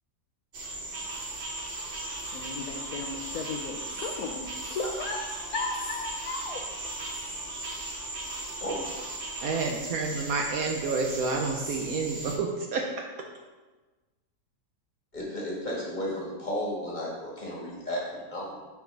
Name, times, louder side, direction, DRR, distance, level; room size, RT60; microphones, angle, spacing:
sound 1, 0.5-12.4, right 2 dB, 45° right, 0.8 m, -37 dB
voice 1, 2.3-4.4 4.7-6.6, left 3 dB, 70° left, 2 dB, 1.0 m, -35 dB
voice 2, 9.4-13.0, right 4 dB, 70° right, 2 dB, 0.9 m, -29 dB
voice 3, 15.1-18.6, equal, 25° left, -5 dB, 1.6 m, -33 dB
5.3 x 4.6 x 4.5 m, 1.2 s
omnidirectional pair, 1.8 m